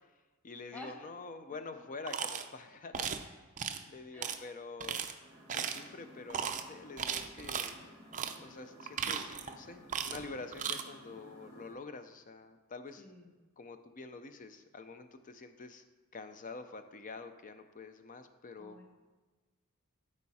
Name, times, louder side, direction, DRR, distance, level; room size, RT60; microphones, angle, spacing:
voice 1, 0.4-3.4 3.9-5.0 5.5-7.8 8.3-13.1 13.6-15.8 16.1-18.8, left 3 dB, 35° left, 9 dB, 0.6 m, -47 dB
voice 2, 1.5-1.8 4.1-4.4 13.0-13.4 18.6-18.9, left 1 dB, 5° left, 1 dB, 1.1 m, -51 dB
sound 1, 2.1-2.5 2.9-3.2 3.6-3.8 4.2-4.4 4.8-5.1 5.5-5.9 6.3-6.6 7.0-7.7 8.1-8.4 8.8-9.5 9.9-10.3 10.5-10.8, right 7 dB, 35° right, 0.5 m, -36 dB
sound 2, 5.2-11.7, equal, 15° right, 3.1 m, -56 dB
13.0 x 4.4 x 4.2 m, 1.3 s
head